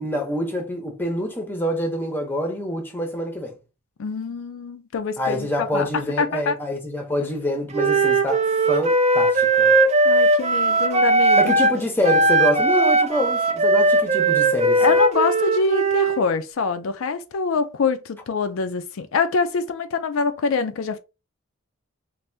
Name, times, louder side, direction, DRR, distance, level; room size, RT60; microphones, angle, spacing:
voice 1, 0.0-3.5 5.2-9.7 11.4-14.8, equal, 10° left, 0.7 m, -26 dB
voice 2, 4.0-6.6 10.0-11.5 14.8-21.0, left 4 dB, 70° left, 0.4 m, -25 dB
Wind instrument woodwind instrument, 7.7-11.8 12.0-16.2, right 2 dB, 30° right, 0.4 m, -18 dB
3.3 x 2.6 x 2.6 m
head